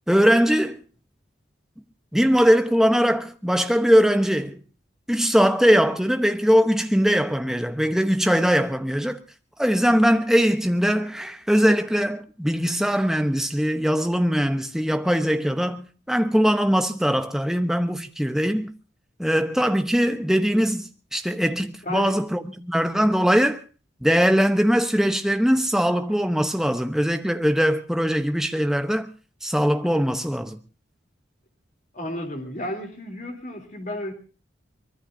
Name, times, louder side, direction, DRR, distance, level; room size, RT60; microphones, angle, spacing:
voice 1, 0.1-0.8 2.1-4.6 5.1-9.2 9.6-18.7 19.2-23.6 24.0-29.1 29.4-30.6, equal, ahead, 0.9 m, -21 dB
voice 2, 21.8-22.1 31.9-34.1, left 1 dB, 40° left, 3.3 m, -32 dB
24.0 x 20.5 x 2.7 m
head